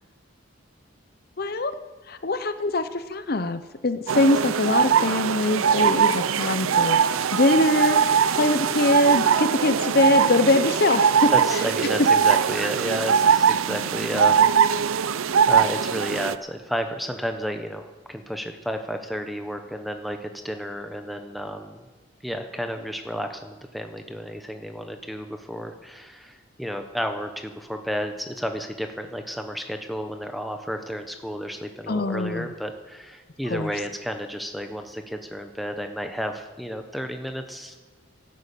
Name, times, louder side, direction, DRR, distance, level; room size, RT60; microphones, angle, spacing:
voice 1, 1.4-1.7 2.1-11.3 31.9-32.5 33.5-33.7, left 2 dB, 45° left, 11 dB, 0.7 m, -23 dB
sound 1, 4.1-16.3, right 7 dB, 80° right, 0.5 m, -21 dB
voice 2, 11.3-15.1 15.4-21.9 22.2-37.9, equal, ahead, 6 dB, 1.0 m, -32 dB
12.0 x 11.5 x 8.4 m, 1.3 s
head